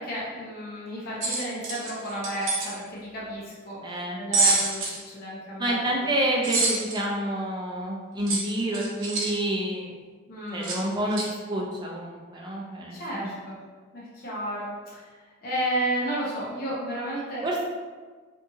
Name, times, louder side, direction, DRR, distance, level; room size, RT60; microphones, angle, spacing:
voice 1, 0.0-6.0 10.3-10.9 12.9-13.6 13.9-17.5, right 1 dB, 45° left, -7 dB, 0.6 m, -32 dB
sound 1, 1.2-2.7 4.3-5.0 6.4-7.0 8.3-9.3 10.6-10.8 11.1-11.3, right 3 dB, 65° right, 0.6 m, -26 dB
voice 2, 3.8-4.2 5.6-9.9 10.5-13.3 17.4-17.7, right 1 dB, 20° right, -2 dB, 0.4 m, -28 dB
2.6 x 2.4 x 2.7 m, 1.4 s
head